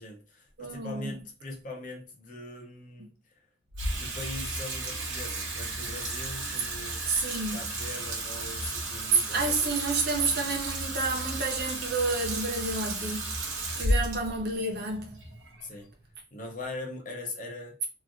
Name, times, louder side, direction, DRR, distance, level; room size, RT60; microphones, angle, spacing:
voice 1, 0.0-3.1 3.9-7.0 7.5-9.6 15.6-15.9 16.3-17.8, left 2 dB, 40° left, 0.7 m, -41 dB
voice 2, 0.6-1.1 7.1-7.6 9.1-13.3 13.8-15.2, right 3 dB, 50° right, 0.7 m, -29 dB
Water tap faucet / Sink (filling or washing), 3.7-16.1, right 2 dB, 70° right, 1.0 m, -34 dB
3.1 x 2.4 x 2.5 m
head